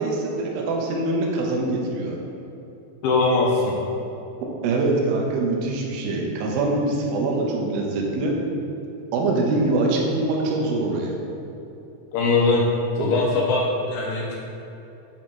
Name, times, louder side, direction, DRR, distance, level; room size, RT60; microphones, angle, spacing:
voice 1, 0.0-2.2 4.6-8.3 9.1-11.2 13.0-13.1, right 2 dB, 75° right, -1 dB, 2.5 m, -24 dB
voice 2, 3.0-3.7 12.1-12.6 13.0-14.4, left 3 dB, 80° left, -2 dB, 2.0 m, -21 dB
8.7 x 3.0 x 6.2 m, 2.9 s
omnidirectional pair, 4.7 m